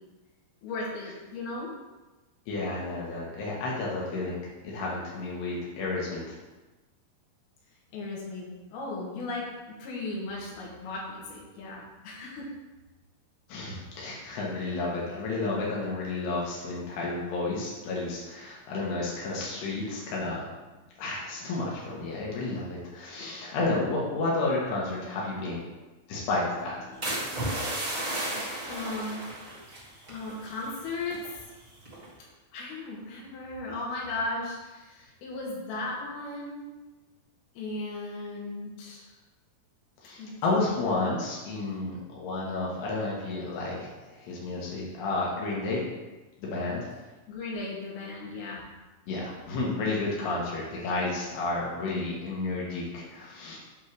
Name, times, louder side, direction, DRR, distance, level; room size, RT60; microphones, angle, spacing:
voice 1, 0.6-1.7 7.9-12.5 28.7-29.2 30.1-31.2 32.5-36.7 37.5-39.1 40.2-40.4 47.3-48.6, left 2 dB, 70° left, -4 dB, 3.4 m, -36 dB
voice 2, 2.5-6.4 13.5-20.5 21.0-25.7 26.1-27.2 40.0-45.9 46.4-46.9 49.1-53.6, left 2 dB, 90° left, -5 dB, 3.3 m, -31 dB
sound 1, 27.0-30.8 31.0-31.4 31.9-32.2, right 1 dB, 50° right, 0.5 m, -34 dB
8.1 x 3.2 x 6.3 m, 1.2 s
omnidirectional pair, 4.7 m